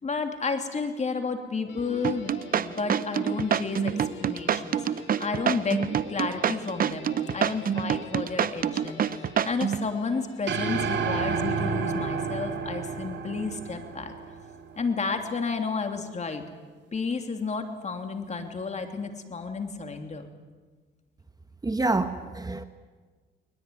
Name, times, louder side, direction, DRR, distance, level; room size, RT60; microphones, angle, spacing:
voice 1, 0.0-3.9 4.2-4.8 5.2-14.1 14.8-16.4 16.9-20.3, left 4 dB, 35° left, 5 dB, 3.0 m, -31 dB
Guitar, 1.7-11.0, left 2 dB, 70° left, 7.2 m, -44 dB
sound 1, 2.0-9.9, right 8 dB, 45° right, 0.8 m, -26 dB
sound 2, 10.5-14.9, right 5 dB, 60° right, 3.4 m, -30 dB
voice 2, 21.6-22.6, right 2 dB, 20° right, 9 dB, 1.2 m, -27 dB
21.0 x 20.5 x 9.5 m, 1.4 s
cardioid pair, 90°, 20 cm